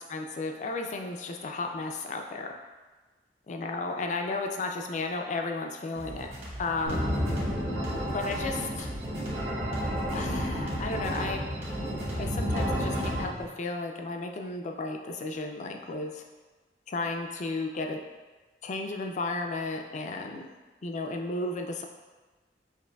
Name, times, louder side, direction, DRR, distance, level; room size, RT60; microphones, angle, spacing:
voice 1, 0.0-2.5 3.5-6.3 6.6-7.2 8.1-8.9 10.1-11.4 12.2-16.2 16.9-18.0 18.6-20.5 20.8-21.9, left 3 dB, 45° left, 3 dB, 0.4 m, -33 dB
sound 1, 5.9-13.5, equal, 35° right, 1.3 m, -41 dB
sound 2, 6.9-13.3, equal, 60° right, 1.3 m, -31 dB
6.2 x 2.6 x 2.2 m, 1.3 s
head